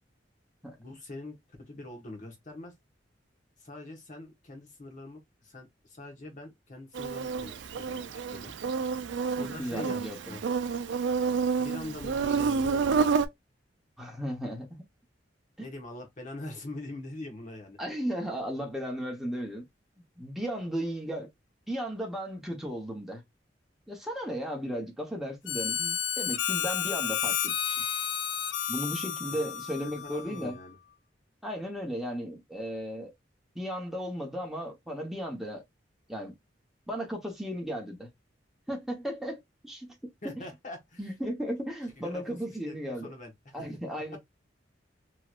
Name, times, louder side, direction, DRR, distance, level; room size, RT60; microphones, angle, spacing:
voice 1, 0.8-2.7 3.6-8.5 9.4-10.6 11.6-13.3 15.6-17.8 29.3-29.5 29.8-30.8 40.2-41.0 42.0-43.7, left 2 dB, 45° left, 1.2 m, -43 dB
Insect, 6.9-13.3, right 5 dB, 70° right, 0.4 m, -29 dB
voice 2, 9.4-10.4 14.0-14.8 15.6-15.7 17.8-19.6 20.2-21.3 21.7-23.2 23.9-27.8 28.7-30.6 31.4-33.1 33.5-35.6 36.1-36.3 36.9-38.1 38.7-39.9 40.2-40.4 41.0-43.1 43.5-44.2, equal, ahead, 1.0 m, -35 dB
Harmonica, 25.5-30.6, left 8 dB, 85° left, 0.5 m, -31 dB
3.1 x 2.8 x 2.4 m
head